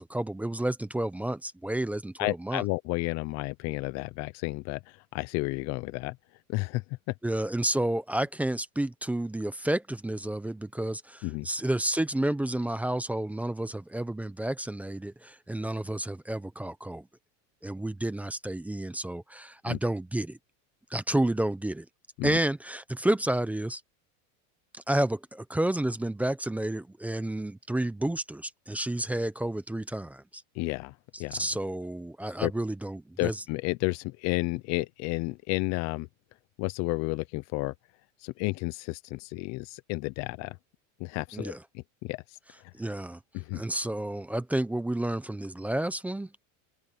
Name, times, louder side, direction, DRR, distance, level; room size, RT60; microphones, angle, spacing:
voice 1, 0.0-2.6 7.2-17.1 17.6-20.4 20.9-21.9 22.2-23.8 24.7-30.4 31.3-33.4 41.3-41.6 42.7-43.2 43.5-46.3, right 1 dB, 5° right, 0.7 m, -30 dB
voice 2, 2.2-6.2 6.5-6.8 11.2-11.5 19.7-19.8 22.2-22.4 30.6-30.9 31.2-31.5 32.4-32.5 33.2-36.1 36.6-37.7 38.2-40.6 41.0-42.2 43.3-43.6, left 23 dB, 45° left, 0.5 m, -32 dB
open air
supercardioid pair, 160°, 39 cm